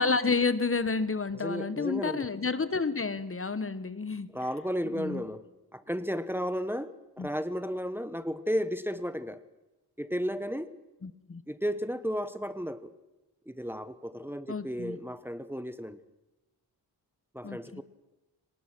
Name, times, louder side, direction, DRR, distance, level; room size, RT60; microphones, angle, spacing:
voice 1, 0.0-4.3 4.9-5.2 7.2-7.3 11.0-11.4 14.5-15.0 17.4-17.8, left 4 dB, 35° left, 14 dB, 1.1 m, -30 dB
voice 2, 1.3-2.3 4.3-5.4 5.7-9.4 10.0-10.7 11.5-12.9 13.5-16.0 17.3-17.8, equal, 5° right, 13 dB, 1.1 m, -33 dB
26.0 x 19.0 x 6.1 m, 1.1 s
cardioid pair, 80°, 40 cm